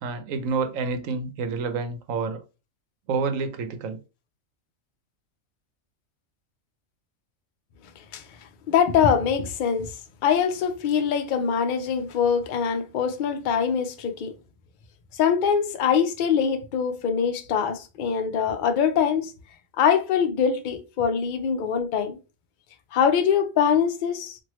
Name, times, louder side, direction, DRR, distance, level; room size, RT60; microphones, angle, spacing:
voice 1, 0.0-2.4 3.1-4.0, right 4 dB, 75° right, 1.0 m, -28 dB
voice 2, 8.7-9.9 10.2-14.3 15.1-19.3 19.8-22.2 22.9-24.4, left 7 dB, 70° left, 0.4 m, -23 dB
2.9 x 2.5 x 3.0 m
omnidirectional pair, 1.4 m